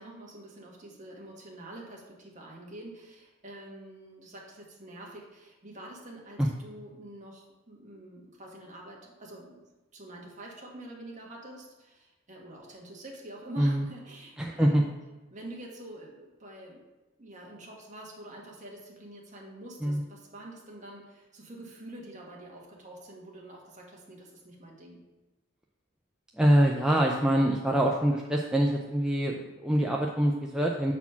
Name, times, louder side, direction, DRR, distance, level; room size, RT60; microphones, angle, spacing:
voice 1, 0.0-9.6 9.9-14.9 15.3-16.8 17.2-25.0, right 1 dB, 35° right, -2 dB, 1.6 m, -46 dB
voice 2, 14.4-14.8 19.8-20.0 26.3-30.9, right 1 dB, 5° right, -1 dB, 0.4 m, -24 dB
7.1 x 4.2 x 5.7 m, 1.1 s
head